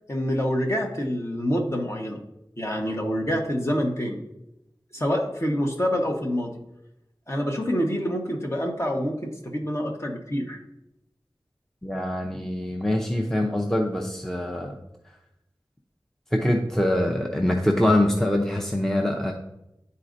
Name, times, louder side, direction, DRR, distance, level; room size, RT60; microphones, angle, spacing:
voice 1, 0.1-2.2 2.6-4.2 4.9-6.5 7.3-10.6, equal, 35° left, 1 dB, 1.2 m, -26 dB
voice 2, 11.8-14.7 16.3-19.3, left 1 dB, 5° left, 1 dB, 0.6 m, -24 dB
11.0 x 4.2 x 2.6 m, 0.85 s
wide cardioid pair, 55°, 8 cm